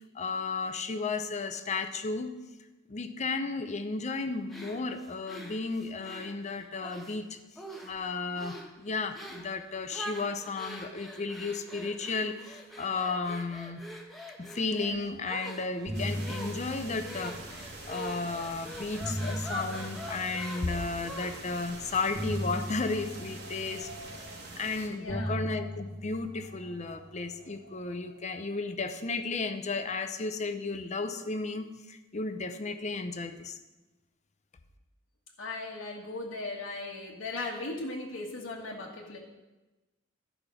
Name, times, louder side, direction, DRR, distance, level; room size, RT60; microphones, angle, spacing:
voice 1, 0.1-2.3 2.9-7.4 7.8-13.8 14.4-23.9 24.6-33.6, left 3 dB, 35° left, 8 dB, 0.6 m, -34 dB
sound 1, 4.5-7.2 7.6-8.0 8.4-8.7 9.1-9.5 9.9-21.6, equal, ahead, 1.0 m, -44 dB
sound 2, 15.2-15.4 15.7-18.0 18.7-21.1 22.1-24.6 25.1-27.7, equal, 80° right, 2.6 m, -38 dB
sound 3, 15.9-24.9, right 2 dB, 55° right, 1.7 m, -45 dB
voice 2, 25.0-25.4 35.4-39.2, left 2 dB, 85° left, -3 dB, 1.2 m, -37 dB
11.5 x 5.1 x 6.2 m, 1.1 s
head